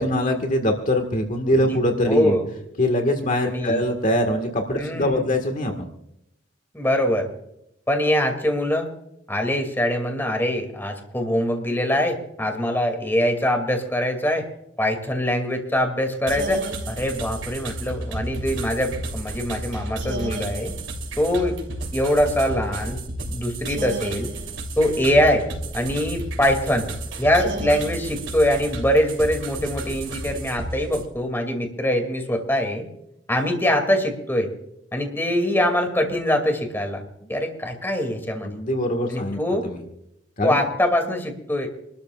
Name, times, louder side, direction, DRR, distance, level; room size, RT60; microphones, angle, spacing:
voice 1, 0.0-2.4 2.8-5.9 38.4-39.8 40.4-40.6, left 1 dB, 45° left, 4 dB, 1.7 m, -23 dB
voice 2, 2.1-2.4 3.5-3.8 4.8-5.2 6.7-7.3 7.9-8.9 9.3-14.5 14.8-20.7 21.2-21.6 21.9-23.0 23.3-24.3 24.8-25.5 25.7-26.9 27.2-32.8 33.3-34.5 34.9-37.0 37.3-38.6 39.1-39.7 40.4-41.7, left 1 dB, 10° left, 4 dB, 2.5 m, -23 dB
sound 1, 16.3-31.1, right 1 dB, 70° right, 3.1 m, -32 dB
27.5 x 13.0 x 2.4 m, 0.80 s
head